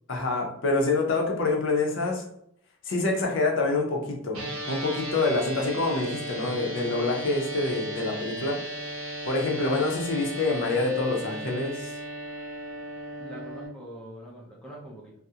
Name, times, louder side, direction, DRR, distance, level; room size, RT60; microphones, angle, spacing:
voice 1, 0.1-2.2 2.8-8.6 9.2-11.9, left 3 dB, 55° left, 1 dB, 0.5 m, -26 dB
sound 1, 4.3-13.7, right 1 dB, 70° right, 0.8 m, -36 dB
voice 2, 9.5-9.9 13.2-15.1, equal, 5° left, -4 dB, 0.4 m, -43 dB
2.4 x 2.0 x 2.7 m, 0.70 s
head